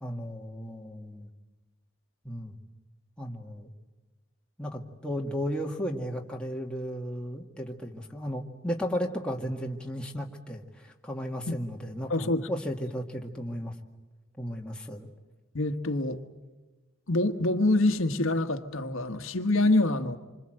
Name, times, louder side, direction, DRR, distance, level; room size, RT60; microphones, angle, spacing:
voice 1, 0.0-1.3 2.2-2.5 3.2-3.7 4.6-13.7 14.4-15.1, equal, 5° left, 1.9 m, -34 dB
voice 2, 12.1-12.5 15.5-16.2 17.1-20.2, left 2 dB, 80° left, 1.5 m, -25 dB
27.0 x 25.0 x 7.8 m
head